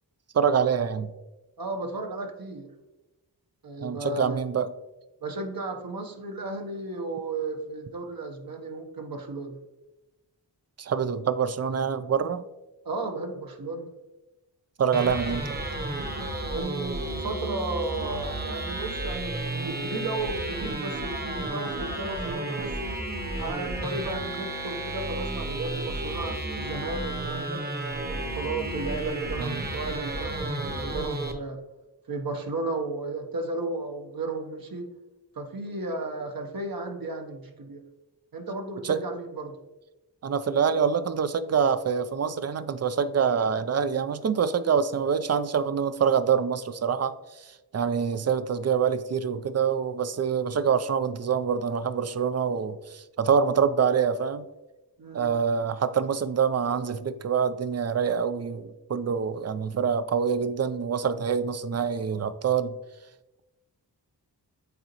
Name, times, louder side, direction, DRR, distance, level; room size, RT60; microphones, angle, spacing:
voice 1, 0.3-1.1 3.8-4.7 10.8-12.4 14.8-15.4 29.4-29.7 38.8-39.0 40.2-54.5 55.1-62.8, right 7 dB, 40° right, 13 dB, 0.4 m, -26 dB
voice 2, 1.6-2.7 3.6-4.4 5.2-9.6 12.8-13.9 16.5-23.0 23.4-27.7 28.1-31.6 32.1-34.9 35.3-37.8 38.3-39.6 55.0-55.3, right 2 dB, 55° right, 4 dB, 1.0 m, -34 dB
sound 1, 14.9-31.3, right 1 dB, 25° right, 1.0 m, -32 dB
8.4 x 3.8 x 3.0 m, 1.0 s
cardioid pair, 40°, 42 cm